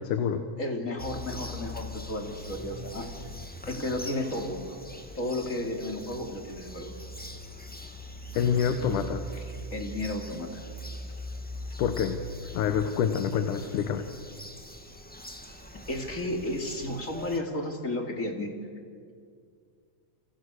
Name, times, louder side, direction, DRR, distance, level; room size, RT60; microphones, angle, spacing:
voice 1, 0.0-0.4 8.4-9.2 11.8-12.2 12.5-14.1, left 7 dB, 80° left, 7 dB, 2.7 m, -27 dB
voice 2, 0.6-3.1 3.7-4.8 5.2-6.9 9.7-10.7 15.9-18.5, left 1 dB, 25° left, 3 dB, 2.9 m, -33 dB
Bird vocalization bird call bird song, 1.0-17.4, left 1 dB, 5° left, 0.8 m, -42 dB
29.5 x 29.0 x 6.5 m, 2.2 s
omnidirectional pair, 3.6 m